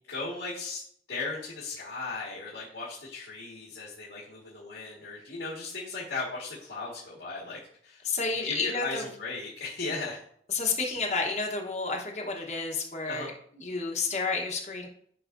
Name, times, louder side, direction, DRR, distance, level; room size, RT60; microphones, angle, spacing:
voice 1, 0.1-0.8 1.1-8.0 8.4-10.2 13.1-13.3, left 3 dB, 85° left, -5 dB, 1.8 m, -37 dB
voice 2, 8.0-9.1 10.5-13.3 13.6-14.9, left 4 dB, 40° left, 0 dB, 1.0 m, -30 dB
10.0 x 5.6 x 2.6 m, 0.62 s
head